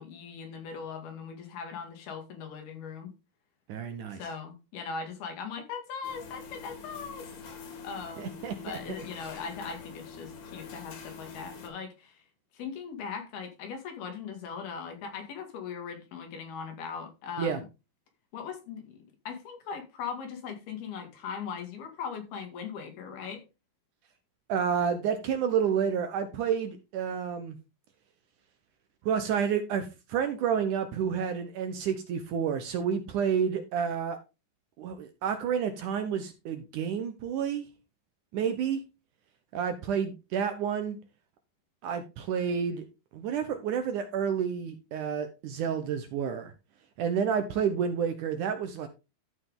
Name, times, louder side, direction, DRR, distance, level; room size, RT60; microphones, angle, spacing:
voice 1, 0.0-3.1 4.1-7.3 7.8-8.3 8.6-12.2 12.5-17.6 18.3-23.4, left 6 dB, 80° left, 4.0 m, -39 dB
voice 2, 3.7-4.2 8.2-8.8 17.4-17.6 24.5-27.6 29.0-34.2 34.8-37.7 38.3-38.8 39.5-41.0 41.8-42.8 43.1-46.5 47.0-48.9, right 7 dB, 70° right, 2.1 m, -30 dB
sound 1, 6.0-11.7, left 5 dB, 60° left, 3.4 m, -45 dB
13.5 x 5.8 x 3.6 m
omnidirectional pair, 4.4 m